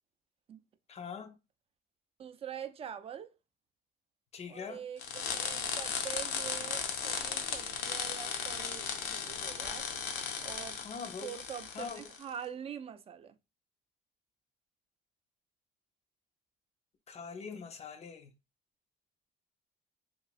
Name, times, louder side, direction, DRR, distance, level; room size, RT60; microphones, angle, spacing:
voice 1, 0.9-1.3 4.3-4.8 10.8-11.3 11.7-12.1 17.1-18.3, left 5 dB, 40° left, 0.5 m, -43 dB
voice 2, 2.2-3.3 4.5-9.9 10.4-10.8 11.2-13.3, right 9 dB, 35° right, 0.3 m, -44 dB
sound 1, 5.0-12.2, left 6 dB, 90° left, 0.5 m, -36 dB
3.0 x 2.7 x 2.4 m
cardioid pair, 110°, 17 cm